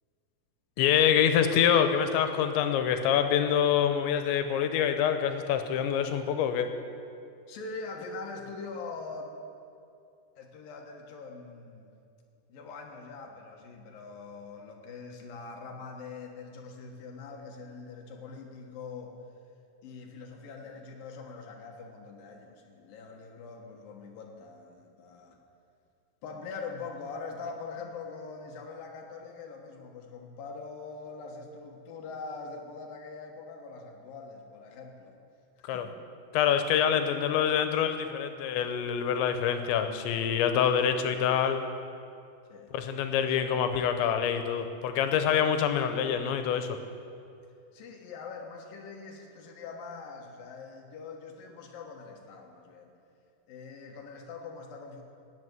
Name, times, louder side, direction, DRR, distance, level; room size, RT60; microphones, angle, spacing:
voice 1, 0.8-6.7 35.6-35.9 36.3-41.6 42.7-46.8, left 8 dB, 90° left, 8 dB, 3.1 m, -26 dB
voice 2, 7.5-9.3 10.4-11.9 12.5-19.2 19.8-25.4 26.2-35.2 35.6-35.9 42.5-42.8 43.1-43.3 47.7-52.9 53.5-55.0, left 4 dB, 65° left, 2 dB, 2.6 m, -43 dB
15.5 x 8.1 x 9.5 m, 2.5 s
omnidirectional pair, 5.2 m